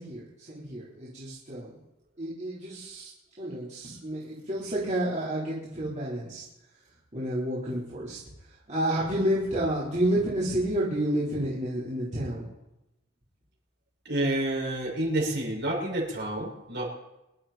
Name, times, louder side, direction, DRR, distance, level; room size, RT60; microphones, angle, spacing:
voice 1, 0.0-1.7 2.2-3.1 3.4-6.4 7.1-8.2 8.7-12.5, right 1 dB, 35° right, -8 dB, 4.4 m, -30 dB
voice 2, 14.0-16.8, right 1 dB, 55° right, -2 dB, 6.6 m, -29 dB
25.5 x 12.0 x 4.5 m, 0.92 s
head